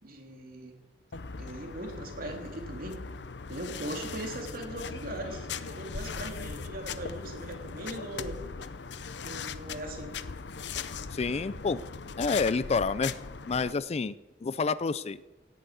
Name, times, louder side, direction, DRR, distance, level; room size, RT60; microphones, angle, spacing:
voice 1, 0.0-0.8 1.4-3.0 3.5-8.4 9.2-10.1, right 1 dB, 55° right, 2 dB, 3.1 m, -40 dB
sound 1, 1.1-13.7, left 5 dB, 70° left, 0.7 m, -39 dB
voice 2, 11.1-11.8 12.2-13.2 13.5-14.1 14.4-15.2, left 4 dB, 35° left, 17 dB, 0.4 m, -28 dB
17.0 x 9.2 x 8.3 m, 1.1 s
head